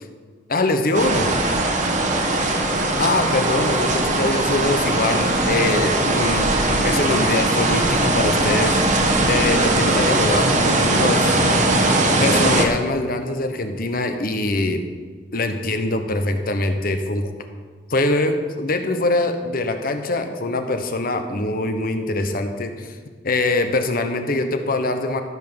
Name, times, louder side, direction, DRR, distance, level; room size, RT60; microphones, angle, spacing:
voice 1, 0.5-1.4 3.0-6.5 6.8-8.8 9.3-11.4 12.2-14.9 15.3-17.3 17.9-23.0 23.2-25.2, left 2 dB, 55° left, 7 dB, 1.1 m, -23 dB
sound 1, 0.9-12.7, right 2 dB, 45° right, 1.4 m, -19 dB
14.0 x 6.0 x 7.0 m, 1.5 s
head